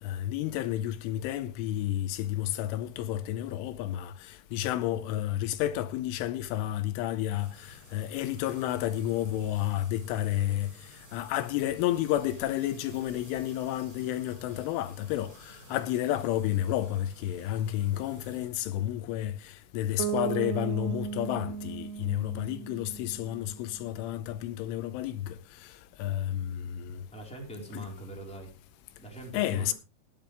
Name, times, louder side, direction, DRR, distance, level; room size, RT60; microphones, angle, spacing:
voice 1, 0.0-10.7 11.1-25.4 25.6-25.7 26.0-27.0 27.7-27.9 29.3-29.7, left 12 dB, 80° left, 3.1 m, -31 dB
sound 1, 7.4-18.5, equal, 20° right, 3.4 m, -53 dB
Bass guitar, 20.0-23.9, right 7 dB, 80° right, 3.2 m, -36 dB
voice 2, 27.1-28.5 29.0-29.7, right 1 dB, ahead, 3.3 m, -42 dB
18.5 x 9.3 x 3.4 m
omnidirectional pair, 5.8 m